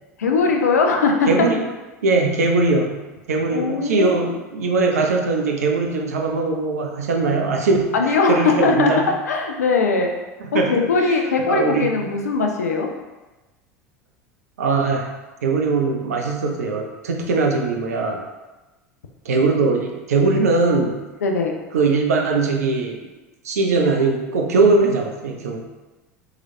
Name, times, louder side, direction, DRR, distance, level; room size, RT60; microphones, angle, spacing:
voice 1, 0.2-1.5 3.5-4.1 7.9-10.1 10.5-12.9 21.2-21.6, left 4 dB, 80° left, 2 dB, 0.5 m, -20 dB
voice 2, 1.3-1.6 2.0-2.9 3.3-7.9 8.3-9.0 10.5-10.7 11.0-11.1 11.5-12.0 14.6-15.1 15.4-18.2 19.3-21.0 21.7-23.0 23.4-25.6, right 3 dB, 75° right, 2 dB, 0.6 m, -20 dB
3.9 x 3.1 x 2.6 m, 1.1 s
figure-of-eight pair, 80°, 8 cm